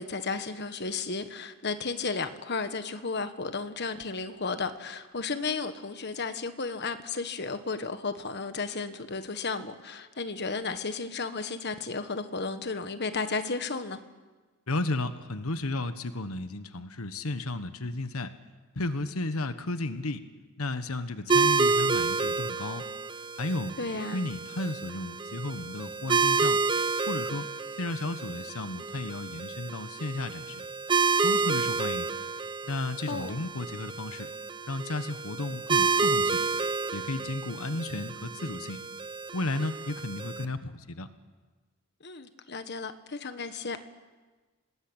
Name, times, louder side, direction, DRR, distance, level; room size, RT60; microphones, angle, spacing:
voice 1, 0.0-14.0 23.8-24.2 33.1-33.4 42.0-43.8, left 4 dB, 50° left, 9 dB, 1.5 m, -33 dB
voice 2, 14.7-18.3 18.7-20.2 20.6-22.9 23.4-23.7 24.1-26.6 27.1-27.5 27.8-30.6 31.2-32.1 32.6-34.3 34.7-36.4 36.9-38.8 39.3-41.1, left 2 dB, 80° left, 10 dB, 1.3 m, -33 dB
sound 1, 21.3-40.4, right 4 dB, 20° right, 0.7 m, -29 dB
26.5 x 19.5 x 8.9 m, 1.3 s
head